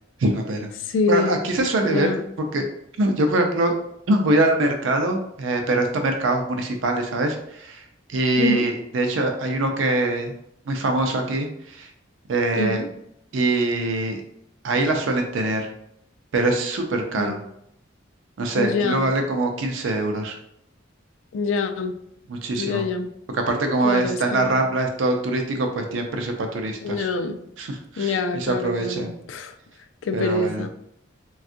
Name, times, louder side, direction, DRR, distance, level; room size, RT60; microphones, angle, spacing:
voice 1, 0.2-0.7 1.1-2.1 2.5-2.6 3.0-3.8 4.1-7.8 8.1-10.3 10.7-11.9 12.3-12.8 13.3-14.2 14.6-15.7 16.3-17.4 18.4-20.4 22.3-22.9 23.3-27.1 27.6-29.1 30.1-30.7, right 2 dB, 75° right, 4 dB, 0.5 m, -23 dB
voice 2, 0.8-1.4 1.8-2.2 8.4-8.7 12.5-12.9 17.1-17.4 18.6-19.1 21.3-21.9 22.6-23.1 23.8-24.6 26.8-27.4 28.0-29.5 30.0-30.7, left 4 dB, 75° left, 8 dB, 0.3 m, -25 dB
3.5 x 2.3 x 2.5 m, 0.74 s
head